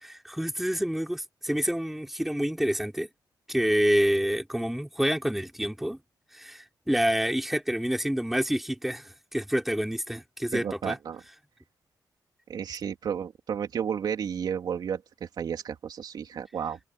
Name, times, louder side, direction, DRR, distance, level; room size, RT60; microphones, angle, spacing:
voice 1, 0.0-3.1 3.5-6.0 6.3-11.0, equal, 5° right, 4.3 m, -28 dB
voice 2, 10.5-11.2 12.5-16.8, right 8 dB, 65° right, 3.3 m, -32 dB
wide cardioid pair, 155°, 8 cm